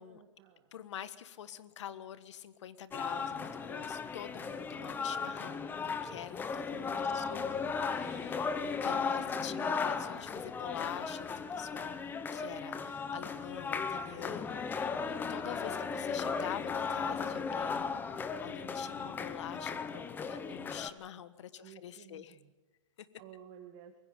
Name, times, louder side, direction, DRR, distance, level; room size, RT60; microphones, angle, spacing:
voice 1, 0.0-0.7 6.7-7.6 9.0-9.5 21.6-22.5 23.2-23.9, right 10 dB, 40° right, 3 dB, 2.0 m, -54 dB
voice 2, 0.7-7.5 7.8-12.0 12.3-22.4 23.0-23.1, left 10 dB, 65° left, 14 dB, 1.4 m, -46 dB
sound 1, 2.9-20.9, left 5 dB, 10° left, 0.9 m, -36 dB
24.5 x 22.0 x 5.2 m, 1.2 s
hypercardioid pair, 145°, 16 cm